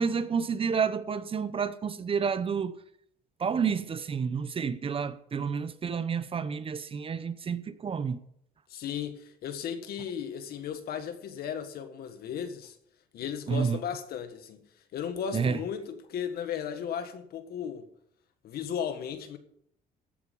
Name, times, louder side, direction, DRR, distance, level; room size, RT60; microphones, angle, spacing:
voice 1, 0.0-2.8 3.4-8.2 13.5-13.8 15.3-15.6, right 6 dB, 35° right, 0.9 m, -30 dB
voice 2, 8.7-12.8 13.1-14.6 14.9-17.9 18.4-19.4, left 8 dB, 65° left, 1.7 m, -35 dB
15.0 x 8.3 x 5.4 m
cardioid pair, 110°, 17 cm